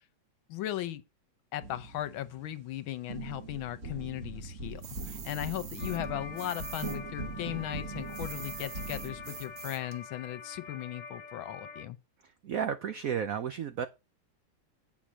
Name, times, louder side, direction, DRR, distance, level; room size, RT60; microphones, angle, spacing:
voice 1, 0.5-1.0 1.5-12.0, left 13 dB, 80° left, 1.6 m, -37 dB
sound 1, 1.6-2.7 3.1-9.9, right 3 dB, 40° right, 2.0 m, -41 dB
sound 2, 4.8-7.0 7.3-10.0, right 8 dB, 55° right, 1.4 m, -45 dB
sound 3, 5.8-11.9, left 5 dB, 45° left, 1.4 m, -45 dB
voice 2, 12.4-13.9, right 8 dB, 80° right, 0.7 m, -32 dB
8.5 x 5.9 x 6.2 m
omnidirectional pair, 2.2 m